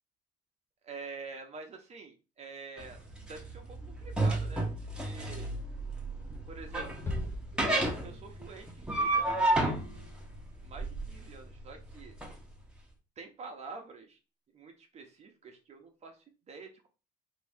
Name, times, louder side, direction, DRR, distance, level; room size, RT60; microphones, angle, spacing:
voice 1, 0.8-4.7 5.0-5.5 6.5-7.3 7.7-9.7 10.6-12.2 13.2-14.2 14.5-16.9, right 4 dB, 40° right, 3 dB, 0.7 m, -47 dB
sound 1, 2.8-12.3, right 1 dB, 5° right, 0.9 m, -32 dB
sound 2, 7.1-8.5, left 1 dB, 15° left, 0.6 m, -38 dB
2.9 x 2.7 x 3.5 m, 0.32 s
cardioid pair, 110°, 17 cm